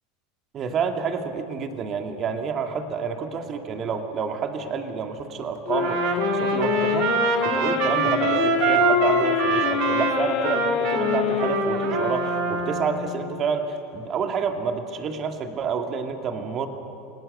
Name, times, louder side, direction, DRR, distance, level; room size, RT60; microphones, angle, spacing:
voice 1, 0.5-7.1 7.4-16.7, right 6 dB, 40° right, 5 dB, 2.4 m, -29 dB
sound 1, 5.7-13.4, left 8 dB, 55° left, 2.6 m, -25 dB
Trumpet, 5.8-12.9, right 9 dB, 60° right, 1.8 m, -26 dB
28.5 x 18.5 x 6.9 m, 3.0 s
supercardioid pair, 110°, 0 cm